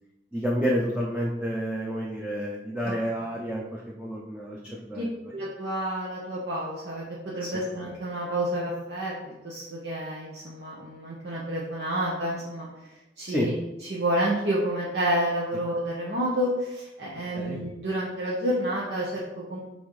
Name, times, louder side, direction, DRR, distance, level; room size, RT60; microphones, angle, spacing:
voice 1, 0.3-5.1 7.4-7.6 13.3-13.5 17.3-17.6, equal, 5° right, -3 dB, 0.7 m, -29 dB
voice 2, 4.7-7.0 7.3-9.1 9.4-12.7 13.2-13.6 13.9-19.6, right 1 dB, 70° right, -6 dB, 1.3 m, -29 dB
5.8 x 4.1 x 4.8 m, 0.95 s
head